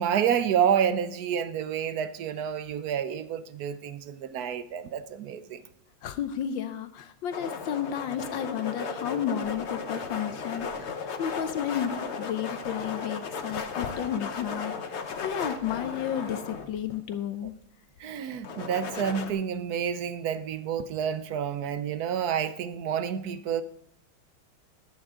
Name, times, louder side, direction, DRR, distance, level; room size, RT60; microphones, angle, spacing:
voice 1, 0.0-5.6 18.0-23.6, right 8 dB, 65° right, 12 dB, 1.0 m, -29 dB
voice 2, 6.0-17.5, left 9 dB, 75° left, 10 dB, 1.4 m, -32 dB
sound 1, 7.3-17.2 18.4-19.3, left 5 dB, 45° left, 0.9 m, -35 dB
14.5 x 10.5 x 3.7 m, 0.69 s
omnidirectional pair, 2.2 m